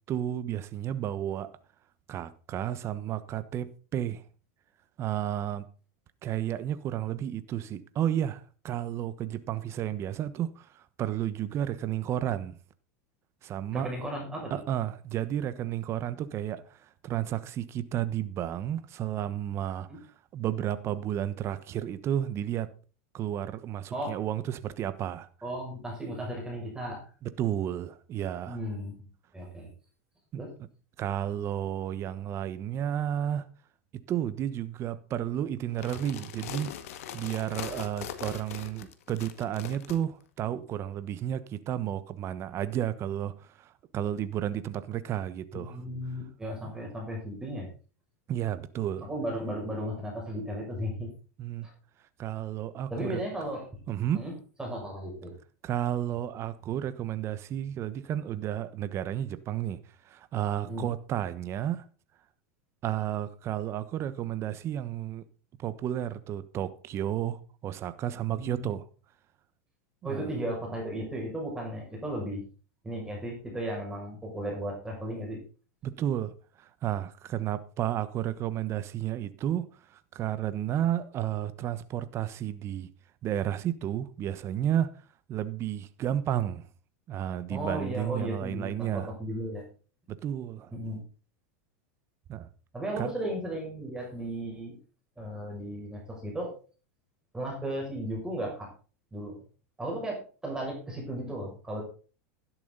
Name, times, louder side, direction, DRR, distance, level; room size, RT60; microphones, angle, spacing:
voice 1, 0.1-1.5 2.1-4.2 5.0-5.7 6.2-12.6 13.4-13.9 14.5-19.9 20.3-22.7 23.1-25.3 27.2-28.6 31.0-33.5 34.1-36.7 37.1-45.8 46.6-46.7 48.3-49.1 51.4-51.7 52.2-53.2 53.9-54.2 55.6-59.8 60.0-61.8 62.8-65.2 65.6-68.8 70.0-70.3 75.8-82.9 83.2-84.9 85.3-86.6 87.1-89.1 90.1-90.7 92.3-92.5 93.0-93.1, right 11 dB, 35° right, 1.1 m, -32 dB
voice 2, 13.7-14.6 19.9-20.0 23.9-24.1 25.4-27.0 28.5-29.0 29.3-29.7 30.4-30.5 45.5-47.7 49.0-51.1 51.6-51.7 52.9-53.7 54.1-54.3 54.6-55.3 60.6-60.9 68.3-68.7 70.0-72.4 72.8-75.4 87.5-89.6 90.7-91.0 92.7-94.7 95.2-96.5 97.3-98.7 99.1-99.4 99.8-101.8, right 1 dB, 10° right, 6.3 m, -35 dB
sound 1, 35.7-40.0, left 10 dB, 75° left, 1.8 m, -41 dB
12.5 x 10.5 x 4.0 m
supercardioid pair, 125°, 8 cm